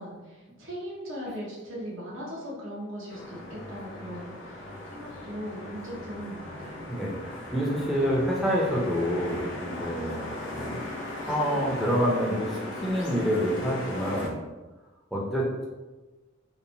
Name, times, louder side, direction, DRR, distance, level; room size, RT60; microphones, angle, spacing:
voice 1, 0.0-7.0, equal, 70° right, -5 dB, 0.7 m, -39 dB
sound 1, 3.1-14.3, left 1 dB, 75° left, 0.5 m, -38 dB
voice 2, 6.9-10.8 11.3-14.3 15.1-15.7, equal, ahead, -5 dB, 0.5 m, -27 dB
2.9 x 2.1 x 2.6 m, 1.2 s
head